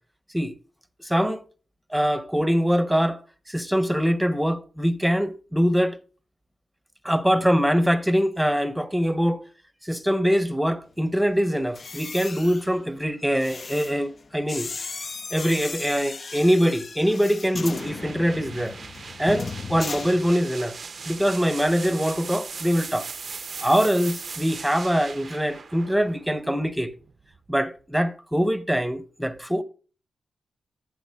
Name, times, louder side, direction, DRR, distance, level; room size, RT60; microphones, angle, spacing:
voice 1, 1.0-1.4 1.9-3.2 3.5-6.0 7.0-9.4 9.8-14.7 15.3-18.7 19.2-20.8 21.1-23.1 23.6-26.9 27.5-29.6, equal, 5° right, 0.7 m, -23 dB
sound 1, 11.6-20.7 21.0-21.3, left 4 dB, 50° left, 0.4 m, -37 dB
sound 2, 17.7-27.5, right 5 dB, 60° right, 0.5 m, -39 dB
11.0 x 8.2 x 2.3 m
cardioid pair, 50°, 0 cm